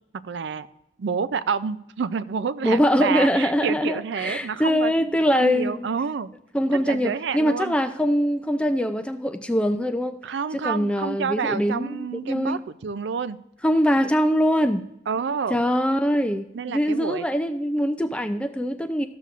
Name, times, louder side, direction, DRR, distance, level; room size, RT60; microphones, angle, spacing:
voice 1, 0.2-0.7 1.0-6.3 6.7-7.7 10.2-13.4 15.1-15.6 16.5-17.2, right 6 dB, 80° right, 14 dB, 0.4 m, -29 dB
voice 2, 2.6-5.9 6.5-10.2 10.5-12.6 13.6-14.9 15.5-19.1, equal, 5° left, 9 dB, 0.3 m, -23 dB
13.5 x 6.9 x 2.5 m, 0.84 s
head